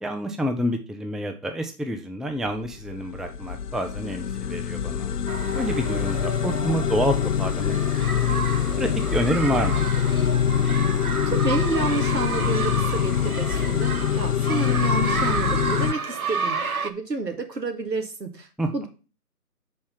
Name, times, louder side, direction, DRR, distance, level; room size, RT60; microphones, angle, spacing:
voice 1, 0.0-5.2 5.5-8.4 8.8-9.9 18.6-18.9, equal, ahead, 5 dB, 0.4 m, -28 dB
sound 1, 2.5-15.9, left 9 dB, 75° left, 0.5 m, -24 dB
sound 2, 5.3-16.9, right 4 dB, 60° right, 0.8 m, -31 dB
voice 2, 11.3-13.9 14.2-18.5 18.7-18.9, right 3 dB, 90° right, 6 dB, 1.8 m, -29 dB
6.3 x 4.2 x 5.6 m, 0.34 s
figure-of-eight pair, 170°, 48 cm